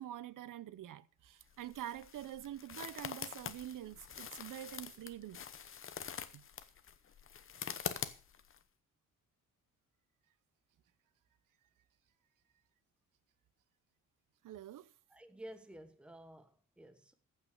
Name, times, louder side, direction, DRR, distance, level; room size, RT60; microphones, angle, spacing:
voice 1, 0.0-5.5 6.3-6.4 14.4-14.9, right 12 dB, 90° right, 0.8 m, -46 dB
sound 1, 1.4-8.6, left 7 dB, 40° left, 0.9 m, -45 dB
voice 2, 15.1-17.1, right 1 dB, 5° right, 1.1 m, -52 dB
15.0 x 5.9 x 6.6 m
wide cardioid pair, 165°, 31 cm